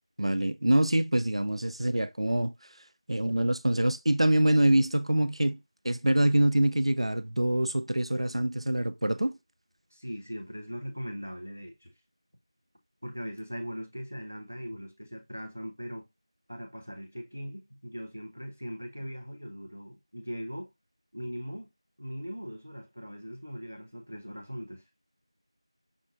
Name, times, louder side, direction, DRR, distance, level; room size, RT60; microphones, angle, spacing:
voice 1, 0.2-2.5 3.1-5.6 5.8-9.4, right 1 dB, 85° right, 0.4 m, -25 dB
voice 2, 9.9-11.9 13.0-16.1 16.5-20.7 21.1-21.7 22.0-24.8, equal, 20° right, 0.4 m, -40 dB
6.1 x 2.6 x 2.4 m
figure-of-eight pair, 180°, 3 cm